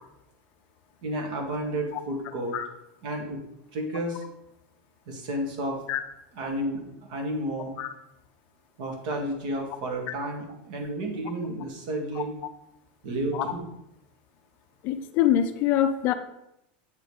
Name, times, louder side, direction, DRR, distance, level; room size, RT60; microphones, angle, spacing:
voice 1, 1.0-2.6 3.0-3.4 3.7-4.2 5.1-5.8 6.4-7.7 8.8-12.3 13.0-13.7, right 1 dB, 60° right, 1 dB, 2.0 m, -31 dB
voice 2, 14.8-16.1, left 11 dB, 35° left, 9 dB, 0.5 m, -24 dB
8.0 x 3.8 x 5.0 m, 0.84 s
supercardioid pair, 165°, 5 cm